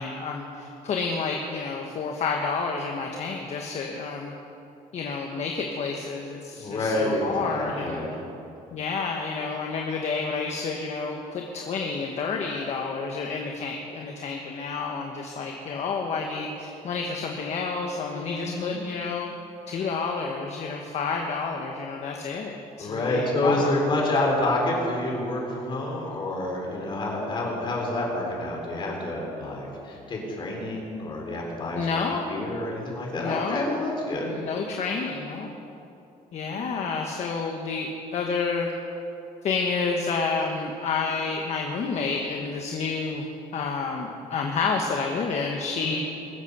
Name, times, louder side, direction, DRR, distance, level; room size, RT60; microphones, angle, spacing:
voice 1, 0.0-4.3 4.9-8.0 8.7-19.3 19.7-23.8 31.8-32.4 33.2-33.9 34.2-35.5 36.3-38.7 39.4-43.3 43.5-46.0, left 4 dB, 50° left, 1 dB, 1.3 m, -29 dB
voice 2, 6.6-8.2 18.1-18.8 22.8-34.4 36.5-36.7 45.7-46.0, left 1 dB, 35° left, -2 dB, 4.0 m, -28 dB
22.0 x 8.2 x 6.9 m, 2.8 s
cardioid pair, 145°, 15 cm